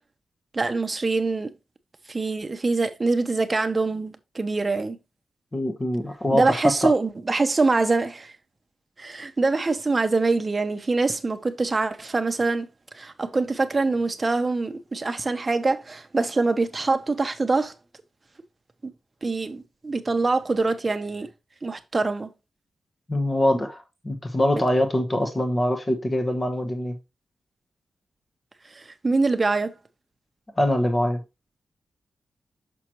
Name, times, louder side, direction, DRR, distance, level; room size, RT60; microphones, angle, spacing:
voice 1, 0.5-1.5 2.1-5.0 6.3-8.3 9.0-12.7 12.9-17.7 18.8-18.9 19.2-21.3 21.6-22.3 24.5-24.6 28.7-29.7, right 3 dB, 30° right, 0.8 m, -24 dB
voice 2, 5.5-6.9 23.1-27.0 30.6-31.2, left 1 dB, 25° left, 1.1 m, -24 dB
6.2 x 5.8 x 3.0 m
wide cardioid pair, 110°, 0 cm